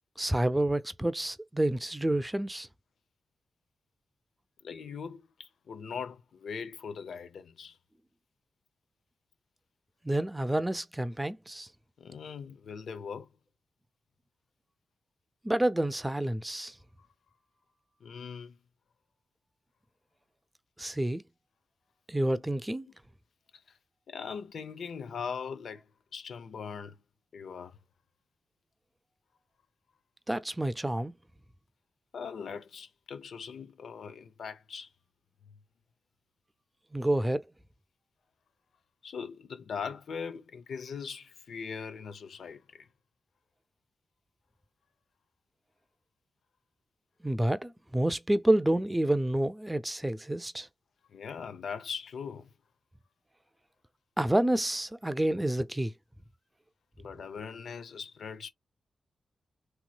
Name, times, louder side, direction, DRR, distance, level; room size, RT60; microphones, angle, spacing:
voice 1, 0.2-2.7 10.0-11.7 15.4-16.7 20.8-21.2 22.1-22.9 30.3-31.1 36.9-37.4 47.2-50.7 54.2-55.9, right 1 dB, 15° right, 0.5 m, -28 dB
voice 2, 4.6-7.8 12.0-13.3 17.0-17.1 18.0-18.6 22.9-23.0 23.5-23.6 24.1-25.9 26.1-27.0 27.3-27.8 32.1-34.9 39.0-42.9 51.1-52.5 57.0-58.5, left 6 dB, 80° left, 0.6 m, -40 dB
3.1 x 3.0 x 2.3 m
cardioid pair, 70°, 0 cm